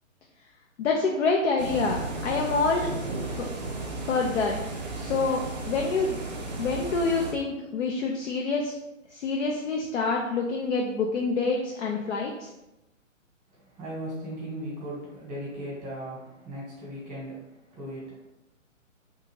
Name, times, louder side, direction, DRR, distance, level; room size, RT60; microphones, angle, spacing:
voice 1, 0.8-2.9 4.0-4.5 5.0-6.2 6.6-8.7 9.1-12.5, left 4 dB, 60° left, 0 dB, 0.5 m, -27 dB
sound 1, 1.6-7.3, right 2 dB, 35° right, 0.4 m, -34 dB
voice 2, 13.5-18.2, right 1 dB, 10° right, -6 dB, 1.0 m, -38 dB
2.6 x 2.3 x 3.0 m, 0.92 s
figure-of-eight pair, 140°, 40 cm